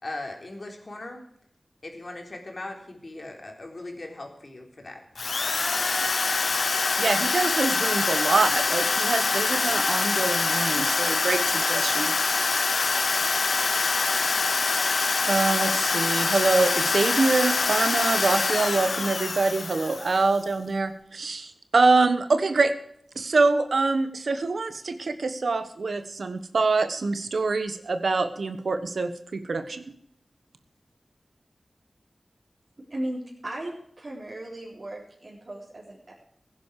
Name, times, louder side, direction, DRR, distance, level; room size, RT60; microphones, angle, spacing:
voice 1, 0.0-1.2 1.8-5.0, left 2 dB, 55° left, 2 dB, 3.7 m, -39 dB
Drill, 5.2-20.4, left 4 dB, 80° left, 0.5 m, -25 dB
voice 2, 7.0-12.1 15.2-22.7 23.1-29.9, right 3 dB, 85° right, 9 dB, 1.3 m, -25 dB
voice 3, 32.9-36.1, right 1 dB, 55° right, -6 dB, 4.2 m, -36 dB
16.0 x 10.5 x 4.8 m, 0.70 s
cardioid pair, 45°, 0 cm